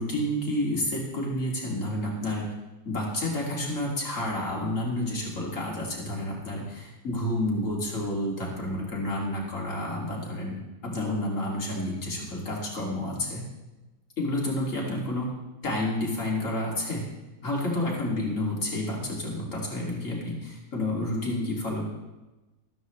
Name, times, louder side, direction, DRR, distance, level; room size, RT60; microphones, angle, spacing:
voice 1, 0.0-2.5 2.8-10.6 10.8-13.4 14.2-15.3 15.6-17.0 17.4-21.9, left 1 dB, 50° left, -3 dB, 2.9 m, -30 dB
13.5 x 13.0 x 3.1 m, 1.1 s
omnidirectional pair, 1.7 m